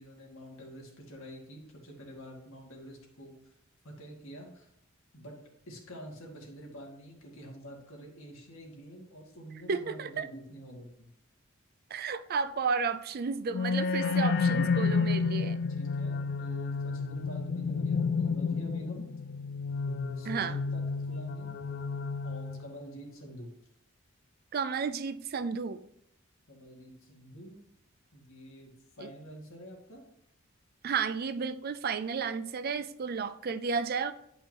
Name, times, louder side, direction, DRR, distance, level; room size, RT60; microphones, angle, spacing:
voice 1, 0.0-3.5 3.8-4.7 5.1-5.4 5.7-11.1 15.7-19.1 20.2-21.5 22.2-23.5 26.5-27.6 28.1-28.7 29.0-30.0, equal, 75° left, 2.0 m, -47 dB
voice 2, 9.7-10.3 11.9-15.6 20.2-20.6 24.5-25.8 29.0-29.1 30.8-34.1, right 5 dB, 45° right, 0.4 m, -32 dB
sound 1, 13.5-22.9, left 4 dB, 50° left, 0.3 m, -31 dB
10.0 x 5.5 x 2.9 m
head